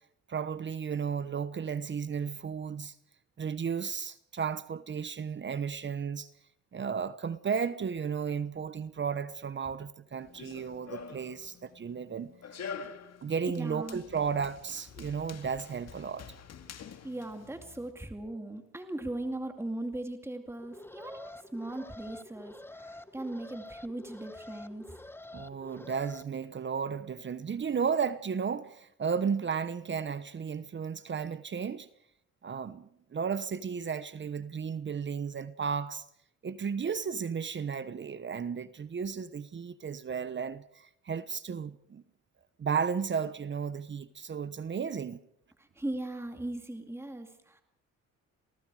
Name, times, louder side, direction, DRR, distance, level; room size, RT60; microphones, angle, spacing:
voice 1, 0.3-2.9 3.4-6.3 6.7-12.3 12.8-12.9 13.2-16.3 25.3-31.9 32.4-36.0 36.4-42.0 42.6-45.2, right 6 dB, 40° right, 1.0 m, -34 dB
Run, 10.2-17.9, left 6 dB, 60° left, 2.1 m, -47 dB
voice 2, 13.5-14.0 17.0-24.8 45.6-47.6, right 1 dB, 10° right, 2.4 m, -39 dB
Alarm, 20.6-26.2, left 2 dB, 5° left, 0.9 m, -48 dB
28.0 x 19.0 x 4.9 m
cardioid pair, 90°, 30 cm